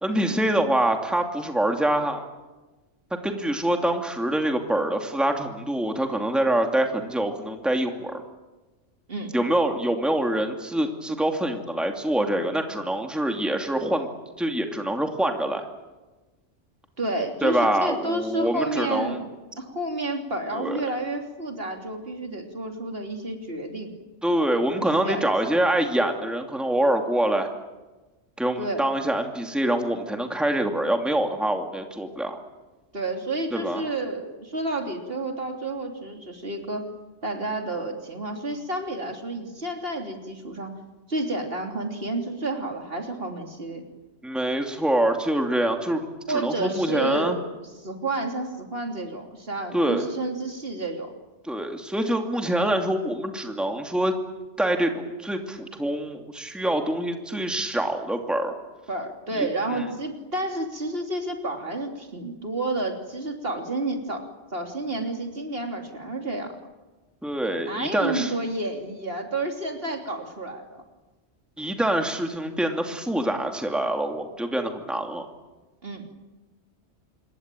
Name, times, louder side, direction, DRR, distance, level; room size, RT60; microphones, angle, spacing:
voice 1, 0.0-2.2 3.2-8.2 9.3-14.1 14.4-15.6 17.4-19.2 20.5-20.8 24.2-27.5 28.4-32.4 33.5-33.8 44.2-47.4 49.7-50.0 51.4-54.2 54.6-58.5 59.3-59.8 67.2-68.3 71.6-75.3, right 1 dB, ahead, 4 dB, 2.6 m, -25 dB
voice 2, 17.0-19.3 19.6-23.9 24.8-25.6 28.6-28.8 32.9-36.8 37.2-40.7 41.1-43.8 46.3-47.4 47.8-51.1 58.9-64.3 64.5-66.6 67.6-70.8 75.8-76.1, right 2 dB, 60° right, 3 dB, 3.5 m, -30 dB
27.0 x 22.0 x 9.2 m, 1.1 s
omnidirectional pair, 1.1 m